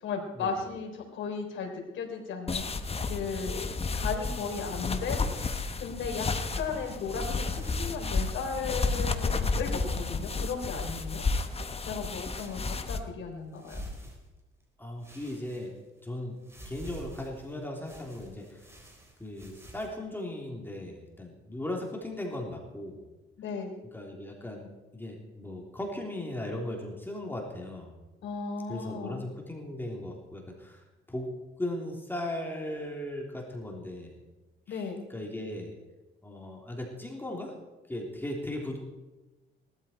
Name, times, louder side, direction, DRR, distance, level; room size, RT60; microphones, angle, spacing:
voice 1, 0.0-11.2 11.8-13.8 23.4-23.8 28.2-29.2 34.7-35.0, left 5 dB, 75° left, 2 dB, 3.8 m, -36 dB
sound 1, 2.5-13.0, left 4 dB, 30° left, 1.3 m, -32 dB
sound 2, 3.6-5.7 6.5-7.0 7.4-8.0 8.3-8.4 8.9-9.5 10.6-11.2 12.1-12.9 13.5-14.6 15.0-16.0 16.4-19.9, equal, 15° right, 4.4 m, -48 dB
voice 2, 14.8-15.7 16.0-16.3 16.6-18.6 19.2-23.0 23.9-27.9 28.7-30.8 31.1-31.3 31.6-34.2 34.7-35.7 36.2-37.5 37.9-38.8, left 1 dB, 10° left, 0 dB, 3.3 m, -37 dB
19.0 x 13.0 x 4.5 m, 1.1 s
cardioid pair, 90°, 20 cm